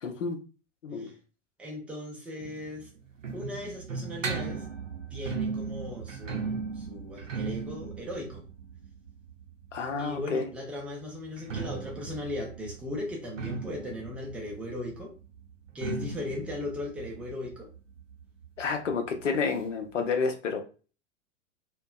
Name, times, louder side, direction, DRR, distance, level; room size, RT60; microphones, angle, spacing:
voice 1, 0.0-0.4 0.8-1.1 9.7-10.5 18.6-20.6, left 5 dB, 75° left, 5 dB, 0.7 m, -30 dB
voice 2, 1.6-2.9 3.3-4.6 5.1-8.4 10.0-15.1 15.7-17.7, left 2 dB, 5° right, -2 dB, 0.3 m, -37 dB
sound 1, 2.4-10.1 11.2-18.6 18.9-19.0 19.2-19.3 20.0-20.1, right 5 dB, 85° right, 0.6 m, -37 dB
2.6 x 2.2 x 2.3 m, 0.35 s
figure-of-eight pair, 95°, 38 cm